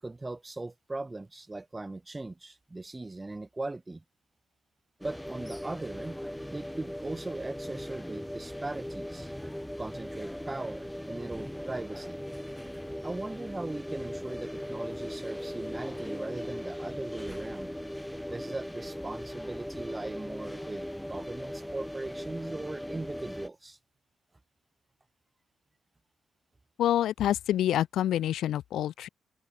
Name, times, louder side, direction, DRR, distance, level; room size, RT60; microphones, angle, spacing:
voice 1, 0.0-4.0 5.0-6.2 6.5-9.3 9.8-12.2 13.0-17.7 18.3-23.8, right 2 dB, 15° right, 1.8 m, -39 dB
sound 1, 5.0-23.5, equal, 5° left, 1.4 m, -39 dB
voice 2, 26.8-29.1, left 12 dB, 75° left, 0.5 m, -27 dB
cardioid pair, 90°, 0 cm